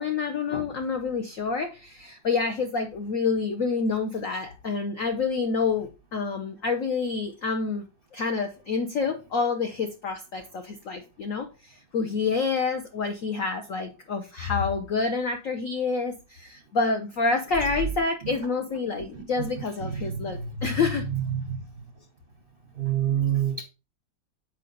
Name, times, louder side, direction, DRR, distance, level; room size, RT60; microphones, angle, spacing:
voice 1, 0.0-7.8 8.1-21.0, left 4 dB, 55° left, 1.0 m, -28 dB
voice 2, 19.8-20.7 21.1-21.6 22.8-23.6, right 9 dB, 40° right, 0.8 m, -27 dB
8.4 x 4.9 x 3.9 m
omnidirectional pair, 2.1 m